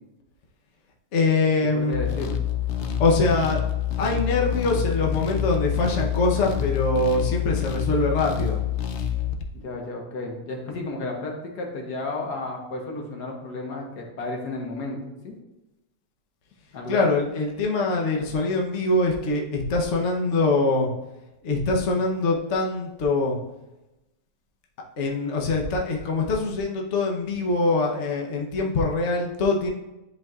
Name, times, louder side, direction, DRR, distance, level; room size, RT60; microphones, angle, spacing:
voice 1, 1.1-2.1 3.0-3.6 4.0-8.6 16.9-20.9 21.4-23.4 25.0-29.7, left 3 dB, 50° left, -1 dB, 1.0 m, -23 dB
voice 2, 1.7-2.3 9.6-15.3 16.7-17.2, left 2 dB, 70° left, 1 dB, 1.6 m, -33 dB
sound 1, 1.9-9.5, left 10 dB, 85° left, 0.6 m, -27 dB
10.5 x 4.6 x 2.4 m, 0.99 s
omnidirectional pair, 1.9 m